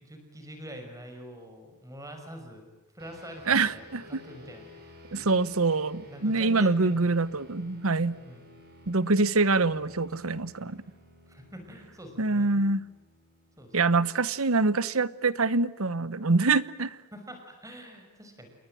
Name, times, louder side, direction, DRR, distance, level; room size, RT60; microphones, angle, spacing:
voice 1, 0.0-2.7 2.9-4.8 5.2-5.3 6.0-7.0 8.2-8.5 11.3-12.5 13.6-13.8 17.1-18.5, equal, 15° right, 5.7 m, -45 dB
sound 1, 3.0-14.7, left 1 dB, 45° right, 7.6 m, -53 dB
voice 2, 3.5-4.2 5.1-8.2 8.9-10.8 12.2-12.8 13.7-17.0, right 3 dB, 70° right, 1.0 m, -25 dB
28.5 x 22.5 x 9.1 m
head